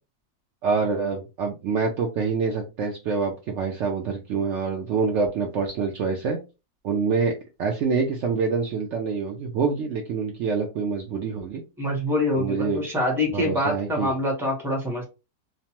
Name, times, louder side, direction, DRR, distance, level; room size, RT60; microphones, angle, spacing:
voice 1, 0.6-6.4 6.8-11.6 12.3-12.8 13.3-14.1, right 5 dB, 85° right, 1 dB, 0.6 m, -26 dB
voice 2, 11.8-15.0, left 1 dB, ahead, -1 dB, 0.7 m, -25 dB
3.1 x 2.0 x 2.8 m, 0.29 s
omnidirectional pair, 1.8 m